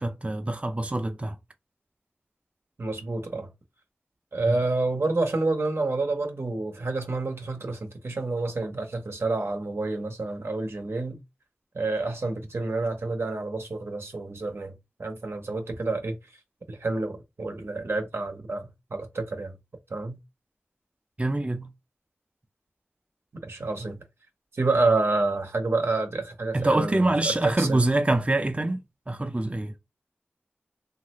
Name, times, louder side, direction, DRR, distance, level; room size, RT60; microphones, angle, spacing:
voice 1, 0.0-1.4 4.5-4.6 21.2-21.7 26.5-29.8, right 2 dB, 30° right, 0.4 m, -25 dB
voice 2, 2.8-3.5 4.3-11.2 11.7-14.7 15.0-16.2 16.7-19.5 19.9-20.2 23.3-24.0 24.5-27.0 27.4-27.9, right 3 dB, 85° right, 0.7 m, -28 dB
3.1 x 2.4 x 2.9 m
wide cardioid pair, 50°, 4 cm